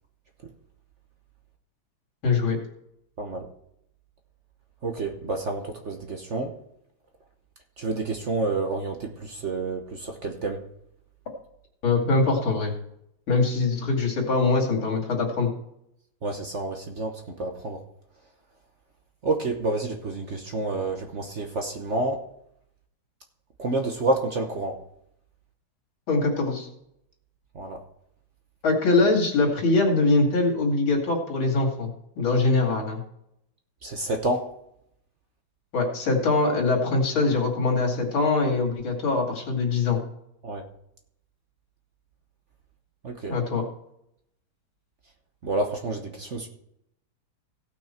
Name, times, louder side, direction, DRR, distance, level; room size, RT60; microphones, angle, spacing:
voice 1, 2.2-2.6 11.8-12.7 13.3-15.5 26.1-26.7 28.6-31.9 32.2-33.0 35.7-40.0 43.3-43.6, left 3 dB, 85° left, 1 dB, 3.3 m, -23 dB
voice 2, 4.8-6.5 7.8-10.6 16.2-17.8 19.2-22.2 23.6-24.8 27.5-27.8 33.8-34.5 40.4-40.6 43.0-43.4 45.4-46.5, right 2 dB, 45° right, 4 dB, 1.1 m, -29 dB
16.5 x 6.2 x 4.4 m, 0.77 s
omnidirectional pair, 2.2 m